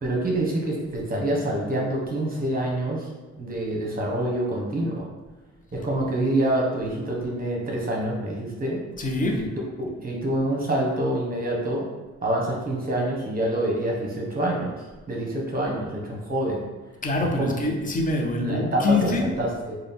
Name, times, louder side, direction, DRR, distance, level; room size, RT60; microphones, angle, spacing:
voice 1, 0.0-3.1 3.4-5.1 5.7-8.8 9.4-9.5 9.8-11.8 12.2-14.8 15.1-16.7 17.4-17.6 18.4-19.8, right 1 dB, 30° right, -2 dB, 1.2 m, -26 dB
voice 2, 9.0-9.5 17.0-19.3, left 2 dB, 25° left, 1 dB, 0.8 m, -24 dB
3.9 x 2.3 x 3.5 m, 1.3 s
cardioid pair, 90°, 30 cm